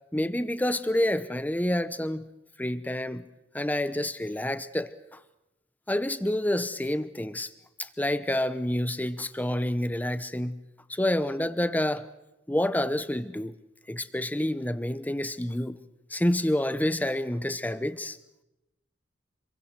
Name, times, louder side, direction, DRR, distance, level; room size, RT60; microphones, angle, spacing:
voice 1, 0.1-2.2 2.6-3.2 3.5-5.2 5.9-7.5 7.8-10.6 10.9-12.1 12.5-13.6 13.9-15.8 16.1-18.2, left 1 dB, 10° left, 13 dB, 0.9 m, -28 dB
26.5 x 23.0 x 6.0 m, 0.92 s
head